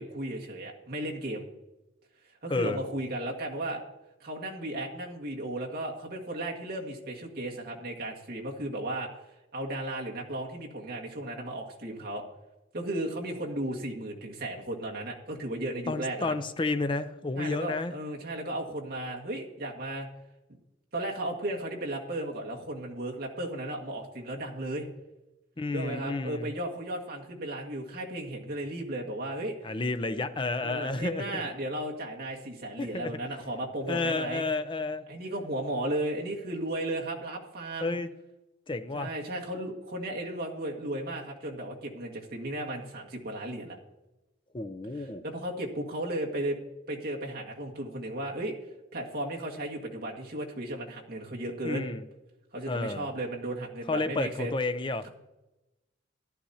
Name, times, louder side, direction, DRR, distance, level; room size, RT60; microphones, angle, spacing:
voice 1, 0.0-1.4 2.4-3.8 4.2-9.1 9.5-12.2 12.7-16.4 17.4-20.1 20.9-24.9 25.7-29.5 30.6-34.4 35.1-38.0 38.9-43.8 45.0-46.6 46.9-48.6 48.9-51.9 52.5-54.6 55.0-55.1, right 1 dB, 50° right, -1 dB, 1.9 m, -35 dB
voice 2, 2.5-2.8 15.9-17.9 25.6-26.5 29.6-31.4 32.8-33.2 33.9-35.0 37.8-38.1 38.7-39.1 44.5-45.2 51.6-52.0 52.7-53.1 53.9-55.1, left 3 dB, 25° left, 10 dB, 0.5 m, -31 dB
14.5 x 11.5 x 2.8 m, 0.99 s
head